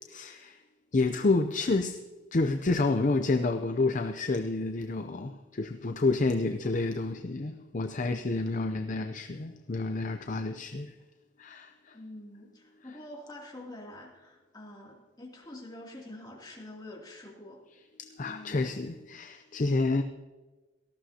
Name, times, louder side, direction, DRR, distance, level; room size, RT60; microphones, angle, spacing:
voice 1, 0.1-0.6 0.9-2.0 2.3-10.9 11.4-12.0 18.0-20.0, left 3 dB, 40° left, 0.5 m, -29 dB
voice 2, 6.1-6.7 10.4-10.6 11.9-17.6 18.2-18.9, left 1 dB, 20° left, 2.7 m, -47 dB
18.5 x 14.0 x 2.8 m
head